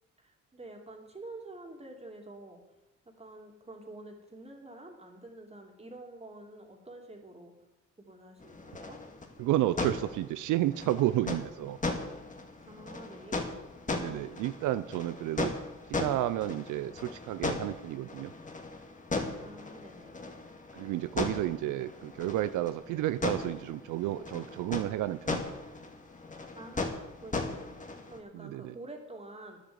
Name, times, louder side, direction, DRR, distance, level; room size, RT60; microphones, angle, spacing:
voice 1, 0.2-2.6 3.0-7.5 8.0-9.0 12.6-13.6 19.4-20.2 26.5-29.6, right 2 dB, 20° right, 2 dB, 2.7 m, -48 dB
sound 1, 8.4-28.2, left 3 dB, 25° left, 1.8 m, -38 dB
voice 2, 9.4-11.8 13.9-15.5 15.9-18.3 20.7-25.4 28.3-28.7, right 14 dB, 85° right, 13 dB, 0.5 m, -31 dB
9.9 x 7.9 x 8.0 m, 0.98 s
cardioid pair, 90°, 30 cm